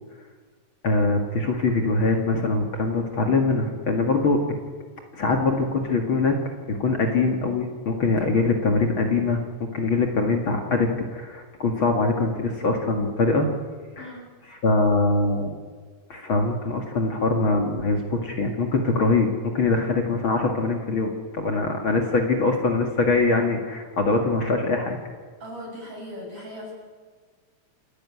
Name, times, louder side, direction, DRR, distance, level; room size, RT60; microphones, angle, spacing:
voice 1, 0.8-4.4 5.1-6.4 6.7-13.5 14.0-14.2 14.5-15.5 16.1-19.3 19.5-25.0, left 3 dB, 45° left, 3 dB, 2.6 m, -23 dB
voice 2, 25.4-26.7, left 1 dB, 50° right, -2 dB, 8.5 m, -38 dB
28.0 x 13.5 x 9.6 m, 1.5 s
omnidirectional pair, 3.3 m